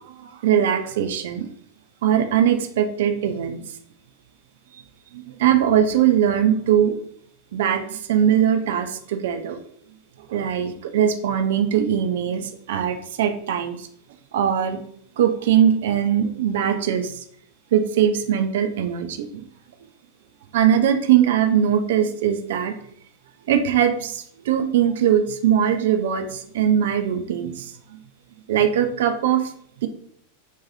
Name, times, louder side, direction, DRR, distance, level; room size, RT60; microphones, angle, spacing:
voice 1, 0.2-1.5 2.0-3.6 5.1-6.9 7.5-9.6 10.3-13.9 14.3-14.8 15.2-17.2 17.7-19.4 20.5-22.7 23.5-27.7 28.5-29.4 29.8-29.9, right 9 dB, 55° right, 7 dB, 0.3 m, -21 dB
2.6 x 2.2 x 2.9 m, 0.66 s
figure-of-eight pair, 90°, 0 cm